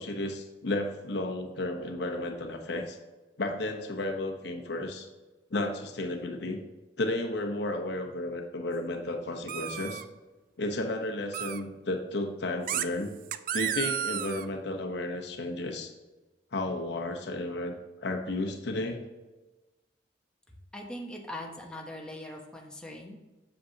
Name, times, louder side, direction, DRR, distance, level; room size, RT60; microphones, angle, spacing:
voice 1, 0.0-3.0 3.4-5.1 5.5-6.6 7.0-10.0 10.6-13.1 13.5-15.9 16.5-17.7 18.0-19.0, left 2 dB, 65° left, 3 dB, 0.9 m, -33 dB
sound 1, 9.5-10.0 11.3-11.6 12.7-12.9 13.3-14.4, right 10 dB, 50° right, 0.3 m, -32 dB
voice 2, 20.7-23.2, left 1 dB, 5° left, -1 dB, 0.8 m, -41 dB
7.8 x 6.9 x 2.8 m, 1.2 s
head